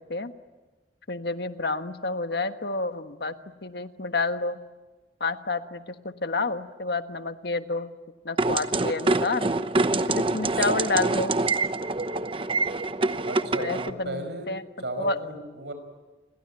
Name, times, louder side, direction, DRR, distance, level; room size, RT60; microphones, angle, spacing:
voice 1, 1.1-3.3 3.6-4.6 5.2-7.9 8.2-9.5 10.1-11.3 13.6-14.6 15.0-15.2, left 3 dB, 65° left, 9 dB, 1.4 m, -29 dB
sound 1, 8.4-13.9, right 2 dB, 30° right, 0.9 m, -25 dB
voice 2, 13.3-14.5 14.8-15.7, right 2 dB, 80° right, 8 dB, 5.3 m, -35 dB
29.0 x 22.5 x 8.9 m, 1.2 s
head